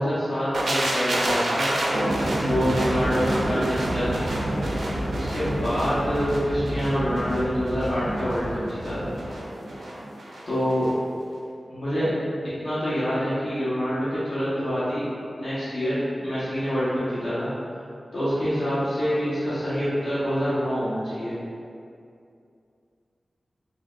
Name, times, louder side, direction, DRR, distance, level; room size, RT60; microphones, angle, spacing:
voice 1, 0.0-1.7 2.4-4.2 5.1-9.1 10.5-10.9 11.7-12.1 12.6-15.0 15.4-17.5 17.8-17.9 18.1-21.3, equal, 70° left, -13 dB, 1.3 m, -26 dB
sound 1, 0.5-10.4 10.7-10.9, right 1 dB, 90° right, 0.5 m, -27 dB
3.7 x 3.2 x 2.5 m, 2.5 s
wide cardioid pair, 80°, 0 cm